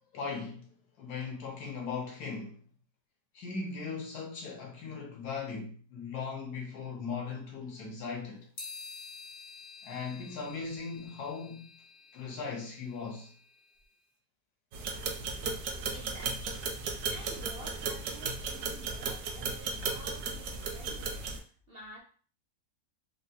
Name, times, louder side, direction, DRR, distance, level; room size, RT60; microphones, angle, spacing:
voice 1, 0.1-0.7 1.0-2.6 3.3-8.5 9.8-11.8 12.1-13.3, left 5 dB, 80° left, 1.4 m, -38 dB
sound 1, 8.6-13.9, left 4 dB, 45° left, 0.6 m, -49 dB
sound 2, 14.7-21.4, right 4 dB, 80° right, 1.1 m, -35 dB
voice 2, 15.9-16.5 17.1-22.0, right 2 dB, 60° right, 0.6 m, -50 dB
3.7 x 2.3 x 2.8 m
omnidirectional pair, 1.7 m